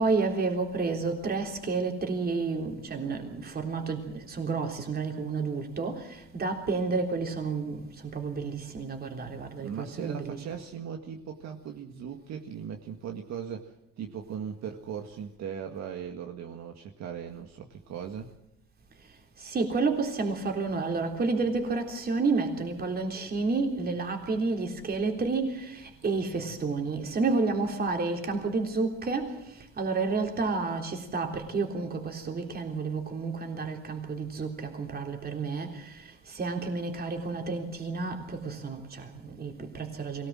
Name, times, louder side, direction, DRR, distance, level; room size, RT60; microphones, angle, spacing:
voice 1, 0.0-10.4 19.4-29.4 29.8-36.0 36.3-40.3, right 4 dB, 30° right, 3.7 m, -30 dB
voice 2, 9.6-18.3, right 8 dB, 60° right, 1.9 m, -38 dB
23.0 x 18.0 x 7.5 m
cardioid pair, 140°, 30 cm